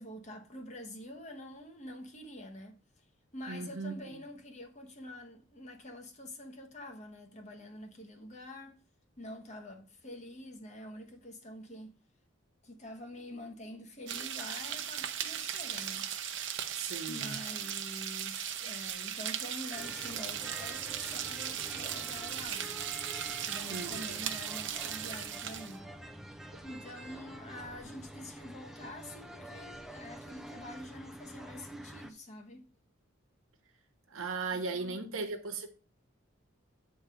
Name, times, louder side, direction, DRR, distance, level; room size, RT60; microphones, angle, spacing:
voice 1, 0.0-3.1 3.3-8.8 9.2-11.9 12.6-16.1 17.1-22.9 23.4-25.9 26.6-32.6 34.5-35.3, left 1 dB, 35° left, 1.0 m, -46 dB
voice 2, 3.5-3.9 16.7-17.4 23.7-24.0 34.1-35.7, right 4 dB, 85° right, 1.1 m, -37 dB
sound 1, 14.1-25.8, right 10 dB, 60° right, 0.7 m, -38 dB
sound 2, 19.7-32.1, right 1 dB, ahead, 0.4 m, -47 dB
8.7 x 3.4 x 5.6 m
head